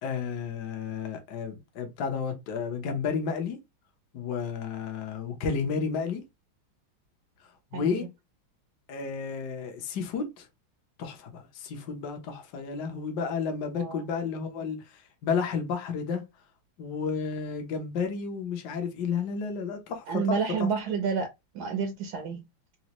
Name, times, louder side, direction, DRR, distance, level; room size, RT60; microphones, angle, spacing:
voice 1, 0.0-3.6 4.1-6.2 7.7-8.1 8.9-10.5 11.0-16.2 16.8-20.7, left 5 dB, 65° left, 1.2 m, -32 dB
voice 2, 20.1-21.3 21.5-22.4, right 5 dB, 75° right, 0.9 m, -29 dB
4.0 x 2.1 x 2.9 m
omnidirectional pair, 2.2 m